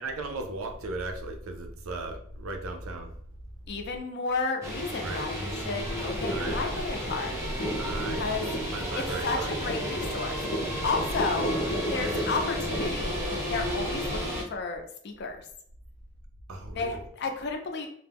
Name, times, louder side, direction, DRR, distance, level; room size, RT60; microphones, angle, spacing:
voice 1, 0.0-3.1 5.0-5.3 6.3-6.8 7.8-9.5 12.0-12.2 16.5-17.0, right 2 dB, 80° right, 4 dB, 0.4 m, -37 dB
voice 2, 3.7-7.4 8.1-8.4 9.0-11.6 11.9-15.4 16.7-17.9, left 4 dB, 50° left, 4 dB, 0.4 m, -32 dB
sound 1, 4.6-14.4, equal, 15° right, 0.6 m, -33 dB
sound 2, 6.0-12.9, equal, 85° left, 0.7 m, -34 dB
2.3 x 2.0 x 3.4 m, 0.63 s
head